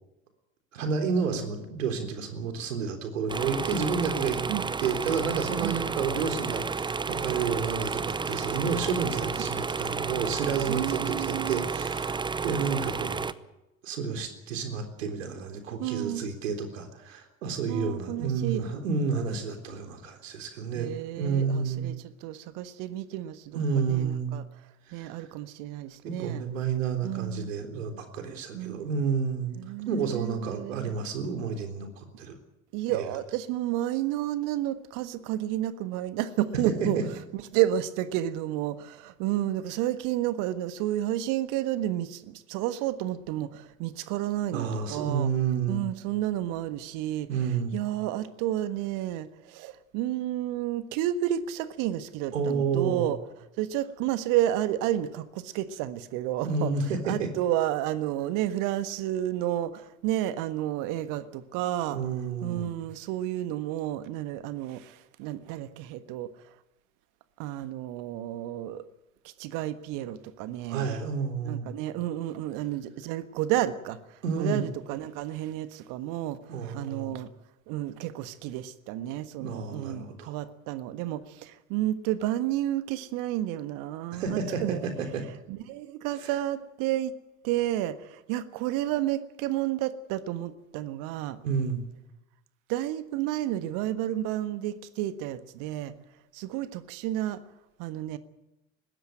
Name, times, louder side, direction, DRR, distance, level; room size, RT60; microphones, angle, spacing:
voice 1, 0.7-4.4 4.8-12.1 12.4-13.3 13.8-21.9 23.5-24.3 24.9-25.1 26.0-29.6 29.9-32.4 32.9-33.1 36.6-37.0 44.5-45.8 47.3-47.8 52.3-53.1 56.4-57.3 61.9-62.7 70.7-71.7 74.2-74.7 76.5-77.1 79.4-80.4 84.1-85.2 91.4-91.8, right 5 dB, 70° right, 6 dB, 3.8 m, -30 dB
sound 1, 3.3-13.3, right 5 dB, 10° right, 0.8 m, -31 dB
voice 2, 10.7-11.7 15.8-16.2 17.7-18.6 20.7-26.4 27.0-27.5 28.5-29.0 29.6-30.9 32.7-37.0 37.3-45.3 45.7-53.2 53.6-56.7 57.0-62.0 62.4-66.5 67.4-68.8 69.2-70.9 71.4-77.3 77.7-84.9 85.5-87.1 87.4-91.4 92.7-95.9 96.3-97.4 97.8-98.2, right 13 dB, 50° right, 12 dB, 1.5 m, -31 dB
20.5 x 16.0 x 9.0 m, 0.96 s
figure-of-eight pair, 70°, 40 cm